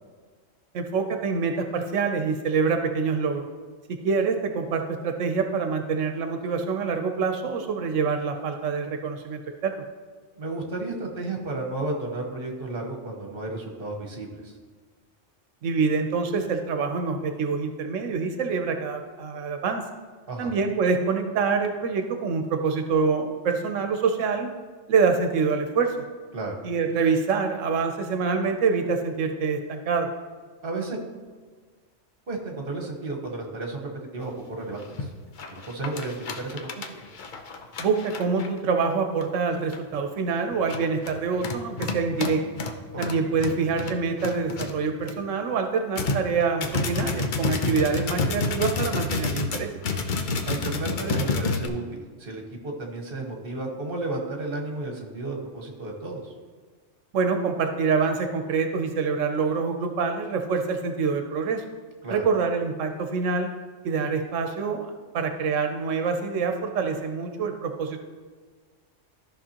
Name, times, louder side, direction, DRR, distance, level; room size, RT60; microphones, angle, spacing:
voice 1, 0.7-3.5 3.9-9.7 15.6-19.8 20.4-24.5 24.9-26.0 26.6-30.1 37.8-42.4 43.0-49.7 57.1-61.6 62.1-63.5 63.8-68.0, right 5 dB, 80° right, 6 dB, 1.1 m, -26 dB
voice 2, 10.4-14.6 20.3-20.5 26.3-26.5 30.6-31.0 32.3-35.1 35.5-36.9 42.9-43.1 50.4-56.3 62.0-62.2, right 2 dB, 50° right, 1 dB, 1.4 m, -33 dB
sound 1, 34.3-34.4 34.8-35.1 35.4-38.6 39.2-39.3 39.7-39.9 40.5-45.1 45.5-45.6 46.0-51.7, left 3 dB, 50° left, 0.7 m, -29 dB
13.5 x 5.6 x 2.9 m, 1.5 s
omnidirectional pair, 1.3 m